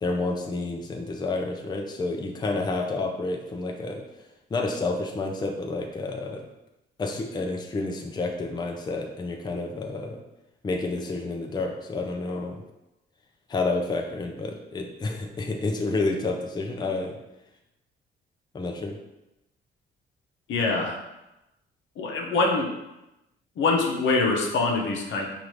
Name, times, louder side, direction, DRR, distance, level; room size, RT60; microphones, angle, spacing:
voice 1, 0.0-4.0 4.5-6.4 7.0-10.2 10.6-12.6 13.5-17.2 18.5-18.9, left 3 dB, 20° left, 2 dB, 0.5 m, -29 dB
voice 2, 20.5-21.0 22.0-22.7 23.6-25.3, left 3 dB, 75° left, 0 dB, 0.8 m, -24 dB
4.8 x 2.5 x 3.1 m, 0.95 s
cardioid pair, 90°, 20 cm